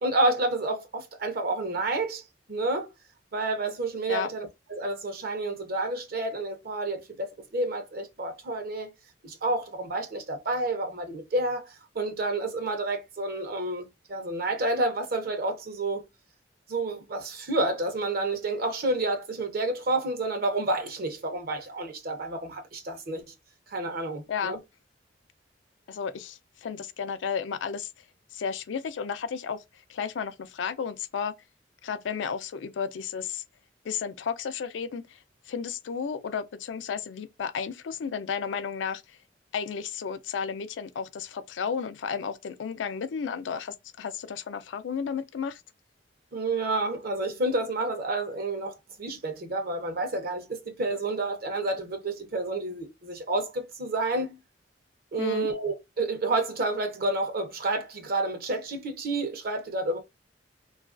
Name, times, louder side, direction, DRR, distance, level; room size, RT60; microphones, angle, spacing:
voice 1, 0.0-2.2 2.5-2.9 3.3-8.9 9.2-16.0 16.7-23.2 23.7-24.6 46.3-54.4 55.1-60.0, right 2 dB, 55° right, 0.6 m, -29 dB
voice 2, 25.9-27.9 28.3-29.6 29.9-31.3 31.8-33.4 33.8-35.2 35.5-39.0 39.5-45.6 55.2-55.5, left 6 dB, 90° left, 0.4 m, -33 dB
3.0 x 2.3 x 2.4 m
head